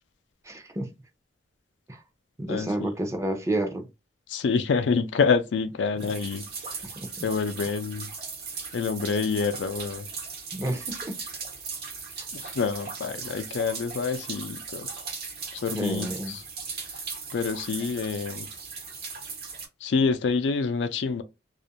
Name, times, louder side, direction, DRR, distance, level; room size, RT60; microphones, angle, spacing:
voice 1, 0.4-0.9 1.9-2.0 2.4-3.9 6.8-6.9 7.2-7.3 10.5-11.2 15.7-16.4, right 1 dB, 15° right, 0.5 m, -30 dB
voice 2, 2.5-2.9 4.3-6.4 6.7-6.8 7.2-8.1 8.7-10.1 12.3-14.9 15.5-16.4 17.3-18.5 19.8-21.2, left 5 dB, 90° left, 0.4 m, -27 dB
sound 1, 6.0-19.7, right 5 dB, 60° right, 1.0 m, -38 dB
2.4 x 2.1 x 2.8 m
head